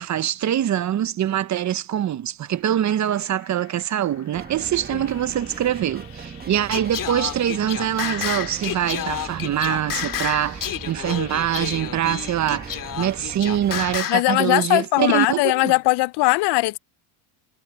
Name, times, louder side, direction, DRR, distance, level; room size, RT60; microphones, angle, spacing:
voice 1, 0.0-15.7, right 11 dB, 35° right, 0.9 m, -24 dB
sound 1, 2.5-13.3, left 27 dB, 80° left, 3.4 m, -48 dB
sound 2, 4.3-14.0, right 5 dB, 20° right, 1.2 m, -39 dB
Singing, 6.7-14.3, left 10 dB, 45° left, 2.5 m, -30 dB
voice 2, 14.1-16.8, left 22 dB, 60° left, 0.6 m, -19 dB
supercardioid pair, 100°, 47 cm